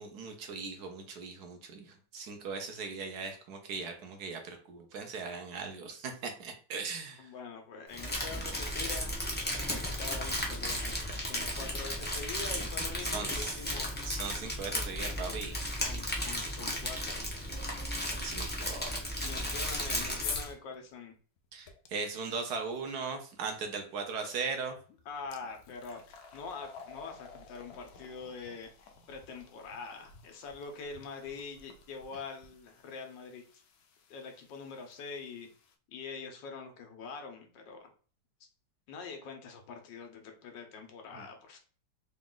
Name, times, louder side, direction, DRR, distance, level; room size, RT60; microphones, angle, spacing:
voice 1, 0.0-7.3 10.9-11.1 13.0-13.5 14.0-15.6 18.2-18.9 21.5-24.7 41.1-41.2, right 5 dB, 70° right, 5 dB, 1.2 m, -39 dB
voice 2, 7.2-9.3 9.7-13.9 15.7-17.3 19.2-21.1 25.0-33.6 34.1-35.5 35.9-37.9 38.9-41.6, left 5 dB, 85° left, 4 dB, 1.6 m, -44 dB
Crumpling crinkling, 7.9-20.5, equal, 15° left, 0.4 m, -35 dB
sound 1, 18.3-18.4 19.5-21.9 24.2-24.3 24.8-35.7, left 7 dB, 70° left, 1.0 m, -49 dB
4.0 x 2.4 x 3.7 m, 0.41 s
omnidirectional pair, 1.9 m